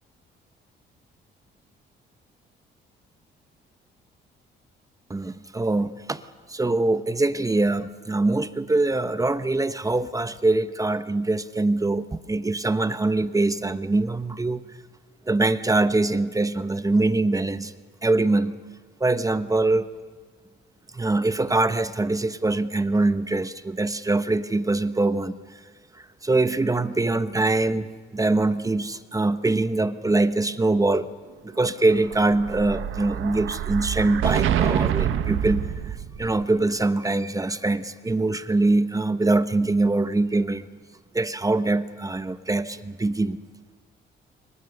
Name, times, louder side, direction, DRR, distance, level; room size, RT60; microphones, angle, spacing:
voice 1, 5.1-6.2 6.5-14.6 15.3-17.7 18.0-18.5 19.0-19.9 20.9-25.6 25.9-31.1 31.4-40.6 41.1-43.4, right 2 dB, 15° right, 12 dB, 1.0 m, -23 dB
Explosion, 31.8-36.4, right 10 dB, 85° right, 1.5 m, -26 dB
28.0 x 24.5 x 6.6 m, 1.4 s
cardioid pair, 90°, 20 cm